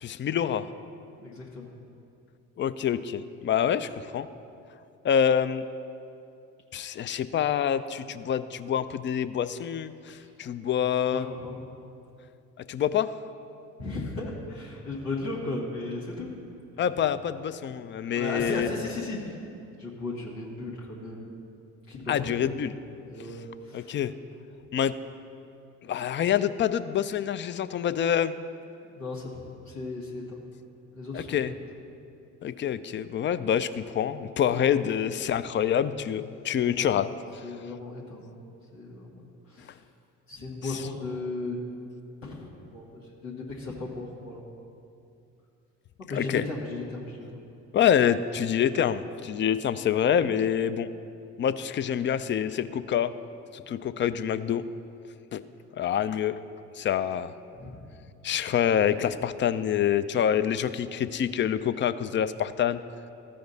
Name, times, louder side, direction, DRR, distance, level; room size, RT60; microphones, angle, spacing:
voice 1, 0.0-0.7 2.6-4.3 5.0-5.6 6.7-11.2 12.7-13.1 16.8-18.7 22.1-22.7 23.7-24.1 24.7-24.9 25.9-28.3 31.1-31.5 32.4-37.1 46.1-46.4 47.7-50.9 51.4-53.1 53.5-54.6 55.3-55.4 55.8-56.4 56.8-57.3 58.2-62.8, left 9 dB, 30° left, 13 dB, 0.4 m, -26 dB
voice 2, 1.2-1.7 10.1-10.3 11.1-11.6 13.8-16.3 16.8-16.9 18.0-19.3 19.8-21.2 21.9-22.4 23.1-24.0 28.9-29.4 29.6-30.4 30.9-31.6 36.5-36.9 37.4-38.3 38.7-39.8 40.3-41.6 42.2-44.4 46.0-47.4 49.7-50.0 57.5-57.7, left 2 dB, 90° left, -5 dB, 1.6 m, -36 dB
14.0 x 5.1 x 4.0 m, 2.6 s
hypercardioid pair, 55°, 37 cm